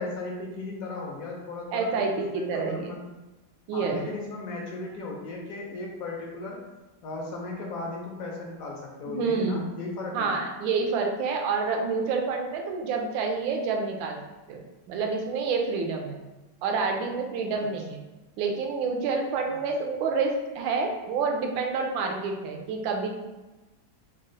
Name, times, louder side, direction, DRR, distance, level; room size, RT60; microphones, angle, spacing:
voice 1, 0.0-3.0 3.7-6.6 7.0-10.4 17.5-17.7 19.5-19.6, left 2 dB, 65° left, -1 dB, 0.9 m, -36 dB
voice 2, 1.7-2.9 3.7-4.0 9.0-9.6 10.1-14.2 14.5-14.6 14.9-16.2 16.6-18.0 18.4-23.1, right 4 dB, 80° right, 3 dB, 1.3 m, -28 dB
4.1 x 2.0 x 3.8 m, 1.1 s
omnidirectional pair, 2.1 m